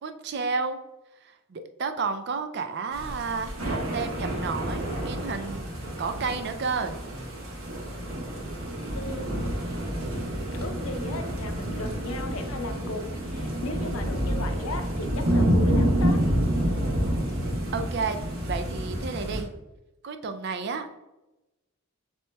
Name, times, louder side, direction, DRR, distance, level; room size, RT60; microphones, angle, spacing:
voice 1, 0.0-0.8 1.2-5.7 6.0-7.0 17.7-18.2 18.5-19.5 20.0-20.9, right 4 dB, 50° right, 8 dB, 0.3 m, -31 dB
sound 1, 2.9-19.4, equal, 70° right, 1.1 m, -28 dB
voice 2, 8.9-9.5 10.6-16.2, left 2 dB, 70° left, 5 dB, 0.6 m, -36 dB
7.4 x 2.9 x 2.2 m, 0.98 s
head